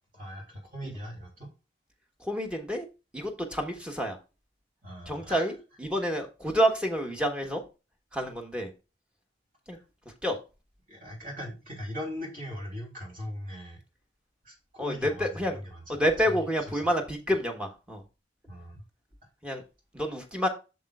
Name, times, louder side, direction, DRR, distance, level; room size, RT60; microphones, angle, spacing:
voice 1, 0.1-1.5 4.8-5.5 9.7-9.8 10.9-13.8 14.4-16.8 18.5-18.8, equal, 45° right, -1 dB, 3.1 m, -40 dB
voice 2, 2.2-2.9 3.1-4.2 5.1-7.6 8.1-8.7 9.7-9.8 10.2-10.4 14.8-15.6 15.9-18.0 19.4-19.6 19.9-20.5, equal, 5° right, 2 dB, 1.2 m, -28 dB
8.2 x 6.8 x 2.4 m, 0.29 s
head